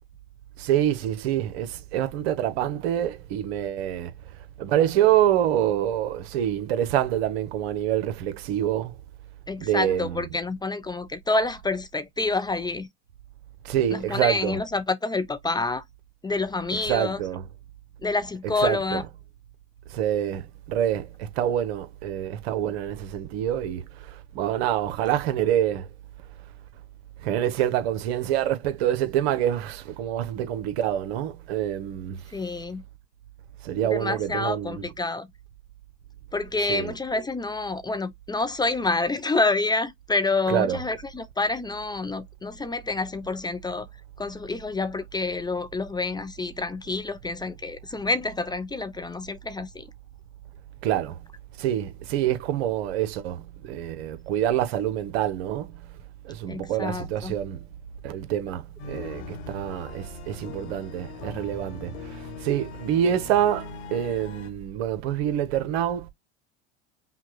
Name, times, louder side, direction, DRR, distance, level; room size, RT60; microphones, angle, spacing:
voice 1, 0.6-4.1 4.6-8.9 9.6-10.3 13.6-14.6 16.9-17.4 18.6-19.0 19.9-25.9 27.2-32.2 33.6-34.9 36.7-36.9 40.5-40.8 50.8-51.2 51.6-55.7 56.2-57.6 58.0-66.1, right 11 dB, 70° right, 1.2 m, -26 dB
voice 2, 9.5-12.9 13.9-15.8 16.2-17.2 18.0-19.0 32.3-32.8 33.8-35.3 36.3-43.9 44.2-49.9 56.5-57.3, left 3 dB, 10° left, 0.6 m, -28 dB
sound 1, 58.8-64.5, left 4 dB, 65° left, 1.6 m, -40 dB
5.6 x 2.3 x 3.0 m
hypercardioid pair, 95°, 33 cm